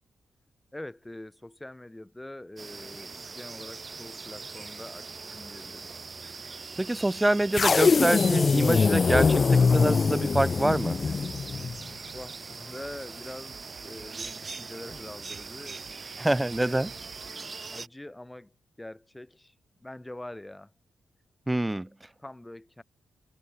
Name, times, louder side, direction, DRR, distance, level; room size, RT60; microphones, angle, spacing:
voice 1, 0.7-5.9 12.1-16.9 17.2-18.5 18.8-19.5 19.8-20.7 22.2-22.8, left 1 dB, 15° left, 5.0 m, -44 dB
sound 1, 2.6-17.9, right 4 dB, 40° right, 0.7 m, -42 dB
voice 2, 6.8-11.0 16.2-16.9 21.5-21.9, right 1 dB, 15° right, 0.3 m, -26 dB
sound 2, 7.5-11.8, left 5 dB, 45° left, 0.5 m, -23 dB
sound 3, 8.1-17.3, right 8 dB, 75° right, 3.5 m, -53 dB
cardioid pair, 60°, 0 cm